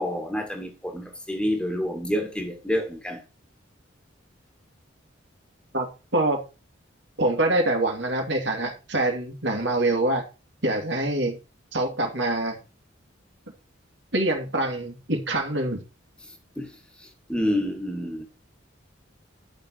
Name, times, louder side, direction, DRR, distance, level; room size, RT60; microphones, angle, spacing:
voice 1, 0.0-3.2 16.6-16.7 17.3-18.2, equal, 5° left, 2.3 m, -28 dB
voice 2, 7.2-10.2 10.6-11.4 11.7-12.6 14.1-15.8, right 2 dB, 60° right, 2.7 m, -25 dB
11.5 x 6.4 x 4.7 m
head